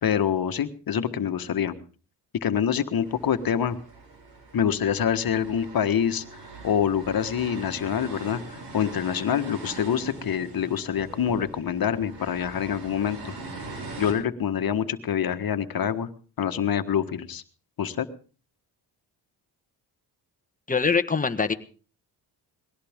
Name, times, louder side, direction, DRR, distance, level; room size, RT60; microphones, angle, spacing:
voice 1, 0.0-1.8 2.4-3.8 4.5-6.2 6.6-13.3 14.0-16.1 16.4-17.4 17.8-18.1, left 8 dB, 55° left, 10 dB, 1.6 m, -26 dB
sound 1, 3.0-14.1, right 2 dB, 75° right, 7.0 m, -42 dB
voice 2, 20.7-21.5, left 5 dB, 20° left, 8 dB, 1.4 m, -23 dB
21.5 x 17.5 x 3.7 m, 0.39 s
cardioid pair, 75°, 42 cm